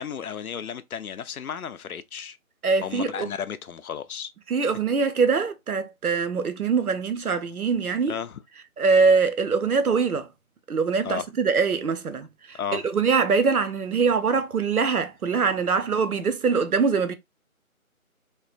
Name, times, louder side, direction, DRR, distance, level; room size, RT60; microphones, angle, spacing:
voice 1, 0.0-2.4 2.8-4.3 8.1-8.4 11.0-11.3 12.5-12.9, left 7 dB, 80° left, 0.6 m, -33 dB
voice 2, 2.6-3.3 4.5-8.1 8.8-10.3 10.7-17.1, right 5 dB, 85° right, 0.8 m, -23 dB
3.6 x 2.2 x 2.5 m
figure-of-eight pair, 180°, 43 cm